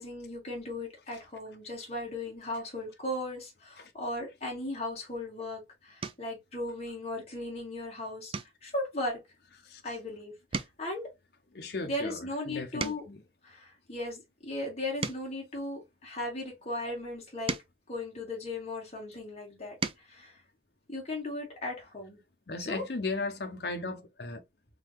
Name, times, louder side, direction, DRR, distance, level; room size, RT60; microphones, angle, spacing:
voice 1, 0.0-8.3 8.6-9.2 9.8-11.1 11.8-13.0 13.4-17.6 17.9-20.4 20.9-22.2 22.6-22.8, left 1 dB, 35° left, 2.0 m, -37 dB
sound 1, 5.1-5.4 6.0-6.4 6.9-7.3 7.6-7.8 8.3-10.1 10.4-13.3 13.9-16.4 17.1-18.9 19.4-20.2 21.6-21.7 22.0-22.1, right 4 dB, 30° right, 0.4 m, -41 dB
voice 2, 11.5-13.2 22.5-24.4, left 3 dB, 60° left, 0.7 m, -36 dB
3.9 x 3.1 x 3.0 m
head